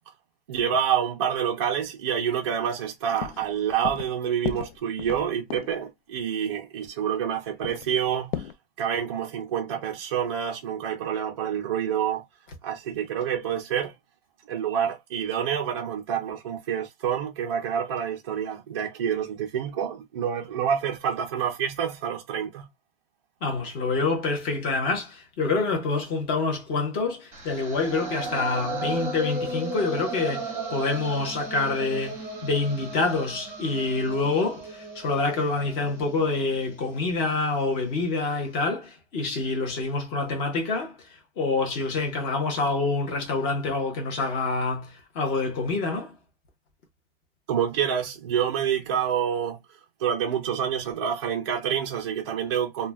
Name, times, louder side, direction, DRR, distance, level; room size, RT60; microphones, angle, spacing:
voice 1, 0.5-8.5 8.8-12.2 12.6-13.9 14.5-22.7 47.5-49.6 50.0-52.9, right 8 dB, 30° right, 0.4 m, -27 dB
sound 1, 2.7-2.8 3.1-3.5 3.8-4.1 4.4-5.8 6.8-6.9 7.1-7.2 7.6-8.5, left 10 dB, 75° left, 0.5 m, -34 dB
voice 2, 23.4-41.0 41.4-46.1, left 3 dB, 15° left, 0.6 m, -27 dB
sound 2, 27.3-37.4, right 2 dB, 10° right, 1.0 m, -35 dB
2.4 x 2.1 x 3.2 m
supercardioid pair, 180°, 30 cm